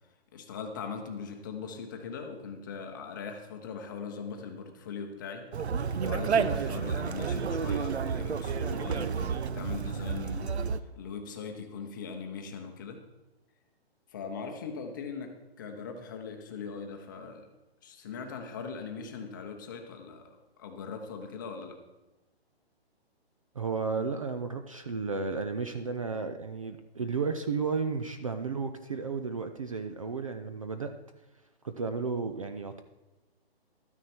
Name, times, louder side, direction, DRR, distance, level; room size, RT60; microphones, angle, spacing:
voice 1, 0.3-10.6 11.0-13.0 14.1-17.5 17.8-21.8, left 5 dB, 20° left, 4 dB, 0.8 m, -40 dB
Conversation, 5.5-10.8, right 6 dB, 85° right, 0.8 m, -30 dB
voice 2, 23.5-30.9 31.6-32.8, right 4 dB, 35° right, 8 dB, 0.5 m, -33 dB
12.5 x 9.6 x 4.4 m, 1.1 s
hypercardioid pair, 170°, 32 cm